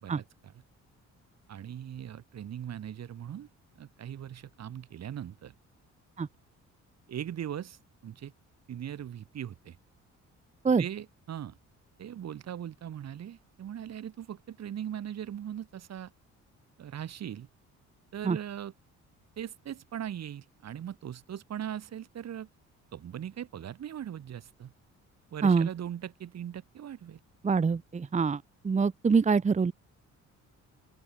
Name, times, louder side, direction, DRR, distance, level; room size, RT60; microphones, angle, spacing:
voice 1, 0.0-0.5 1.5-3.5 3.8-5.5 7.1-8.3 8.7-9.8 10.8-11.6 12.0-16.1 16.8-17.5 18.1-18.7 19.4-22.5 22.9-24.7 25.3-27.2, right 10 dB, 60° right, 2.5 m, -40 dB
voice 2, 27.4-29.7, right 5 dB, 25° right, 0.8 m, -25 dB
open air
cardioid pair, 90°, 30 cm